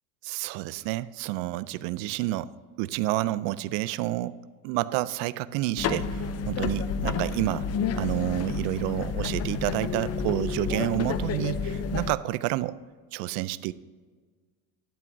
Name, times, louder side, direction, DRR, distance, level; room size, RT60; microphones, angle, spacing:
voice 1, 0.2-2.5 2.8-4.4 4.6-7.7 8.0-12.8 13.1-13.7, right 17 dB, 70° right, 17 dB, 0.5 m, -29 dB
sound 1, 5.8-12.1, left 5 dB, 35° left, 0.6 m, -30 dB
12.0 x 10.5 x 2.7 m, 1.5 s
cardioid pair, 125°, 43 cm